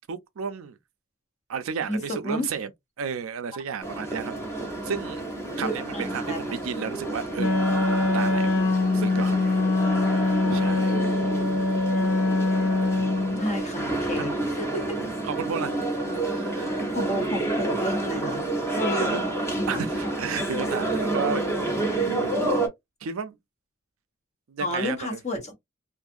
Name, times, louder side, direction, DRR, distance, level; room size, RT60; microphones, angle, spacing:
voice 1, 0.1-0.8 1.5-2.7 3.0-5.3 5.6-8.5 8.8-10.2 10.5-11.0 14.2-14.3 15.2-15.7 16.2-16.9 18.6-19.2 19.7-21.9 23.0-23.4 24.5-25.2, right 6 dB, 80° right, 0.5 m, -33 dB
voice 2, 1.9-2.5 5.6-6.4 13.4-15.0 16.9-18.4 18.8-19.2 19.5-19.8 24.6-25.6, left 1 dB, 35° left, 0.9 m, -31 dB
sound 1, 3.8-22.7, right 2 dB, 15° left, 0.8 m, -29 dB
Wind instrument woodwind instrument, 7.4-13.5, left 3 dB, 70° left, 0.9 m, -23 dB
2.5 x 2.4 x 2.6 m
head